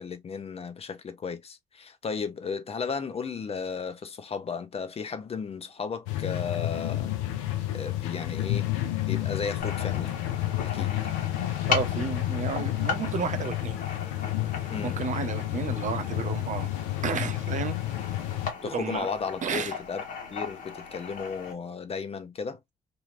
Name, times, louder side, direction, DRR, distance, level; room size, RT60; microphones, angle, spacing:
voice 1, 0.0-7.1 7.7-8.7 9.1-10.1 10.6-10.9 14.7-15.0 18.6-20.0 20.3-22.6, left 5 dB, 40° left, 0.7 m, -34 dB
sound 1, 6.1-18.5, left 14 dB, 85° left, 0.5 m, -30 dB
sound 2, 9.6-21.5, left 6 dB, 55° left, 1.3 m, -37 dB
voice 2, 11.7-13.8 14.8-16.7 17.0-17.8 18.6-19.1 19.4-19.8, right 6 dB, 50° right, 0.7 m, -32 dB
2.9 x 2.7 x 2.4 m
hypercardioid pair, 55°, 16 cm